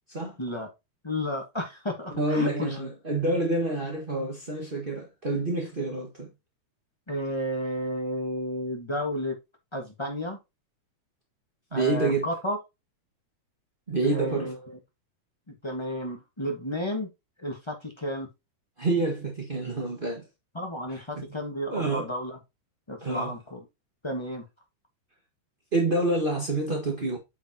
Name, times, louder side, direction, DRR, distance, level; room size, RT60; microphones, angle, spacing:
voice 1, 0.4-0.7 1.0-2.9 7.1-9.4 9.7-10.4 11.7-12.6 14.0-14.8 15.6-17.1 17.4-18.3 20.5-22.4 22.9-23.6 24.0-24.5, equal, 35° left, 0.4 m, -32 dB
voice 2, 2.1-6.3 11.7-12.3 13.9-14.5 18.8-20.2 21.7-22.1 23.0-23.3 25.7-27.2, right 2 dB, 30° right, 1.0 m, -27 dB
8.5 x 5.7 x 2.9 m
omnidirectional pair, 3.4 m